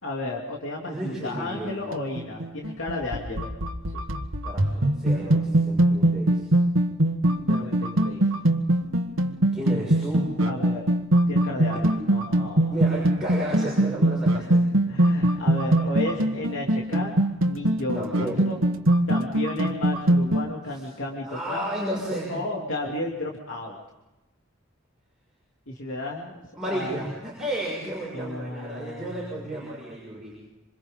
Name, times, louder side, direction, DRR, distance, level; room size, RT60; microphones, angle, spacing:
voice 1, 0.0-3.5 7.3-8.2 10.4-10.9 11.3-12.7 14.3-14.5 14.9-17.2 17.5-18.6 19.1-21.7 22.3-23.8 25.7-27.1 28.1-29.3, left 2 dB, 75° left, -2 dB, 3.1 m, -33 dB
voice 2, 0.8-1.8 4.4-6.5 9.5-10.3 12.7-14.6 17.9-18.4 21.2-22.3 26.5-30.3, right 1 dB, 5° right, -7 dB, 6.7 m, -32 dB
sound 1, 1.6-20.5, right 1 dB, 90° right, 1.6 m, -23 dB
27.5 x 27.0 x 3.8 m, 1.0 s
head